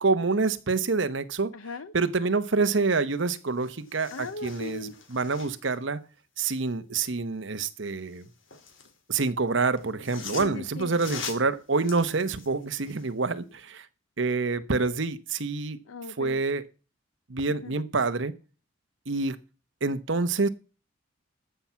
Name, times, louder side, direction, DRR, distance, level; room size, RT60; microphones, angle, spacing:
voice 1, 0.0-1.5 1.9-6.0 6.4-8.3 9.1-13.9 14.2-15.8 16.2-16.6 17.3-18.3 19.1-19.4 19.8-20.5, right 4 dB, 65° right, 0.9 m, -27 dB
voice 2, 1.5-1.9 4.1-4.9 10.4-10.9 15.9-16.4 17.6-17.7, left 4 dB, 85° left, 0.6 m, -38 dB
sound 1, 3.1-3.2 3.5-5.8 7.9-9.0 9.8-13.1 13.5-13.6, left 5 dB, 70° left, 2.2 m, -42 dB
14.0 x 5.8 x 7.3 m
head